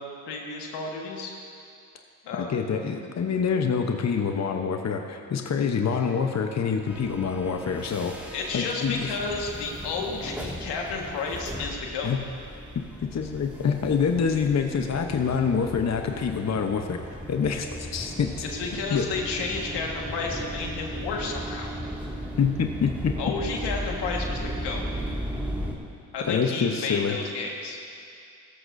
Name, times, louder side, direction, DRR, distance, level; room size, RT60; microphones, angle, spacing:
voice 1, 0.0-1.3 2.2-2.6 8.3-12.1 18.5-21.7 23.2-24.8 26.1-27.8, left 4 dB, 85° left, 0 dB, 1.7 m, -32 dB
voice 2, 2.3-8.1 8.5-9.2 12.0-12.2 13.0-17.0 17.3-18.4 18.9-19.1 22.4-23.1 26.3-27.2, left 6 dB, 40° left, 4 dB, 0.9 m, -26 dB
sound 1, 6.9-25.8, equal, 5° right, 2.1 m, -36 dB
16.5 x 13.5 x 2.6 m, 2.4 s
supercardioid pair, 60°, 40 cm